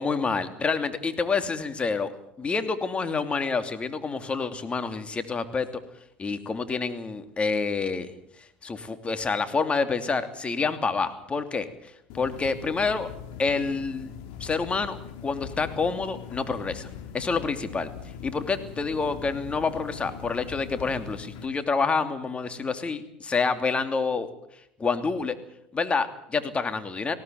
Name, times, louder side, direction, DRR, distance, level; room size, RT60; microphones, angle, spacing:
voice 1, 0.0-2.1 2.4-5.7 6.2-8.1 8.6-11.7 12.1-13.1 13.4-14.1 14.4-15.0 15.2-16.9 17.1-17.9 18.2-24.3 24.8-25.3 25.7-27.1, left 4 dB, 25° left, 9 dB, 2.8 m, -27 dB
sound 1, 12.1-21.5, left 7 dB, 65° left, 3.4 m, -41 dB
19.5 x 17.5 x 9.3 m, 0.77 s
hypercardioid pair, 85°, 5 cm